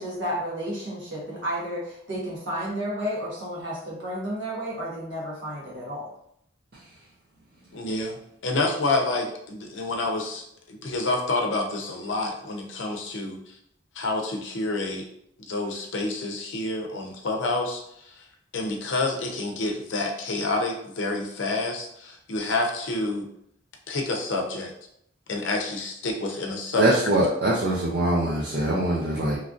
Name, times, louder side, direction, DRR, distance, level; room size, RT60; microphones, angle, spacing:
voice 1, 0.0-6.1, equal, 75° right, -5 dB, 1.2 m, -32 dB
voice 2, 7.7-10.4 10.7-13.4 14.0-15.1 15.5-17.8 18.5-23.3 23.9-24.7 25.3-26.9, left 2 dB, 75° left, 2 dB, 0.5 m, -28 dB
voice 3, 26.8-29.4, right 1 dB, 55° right, -5 dB, 0.5 m, -23 dB
3.1 x 2.5 x 2.4 m, 0.72 s
head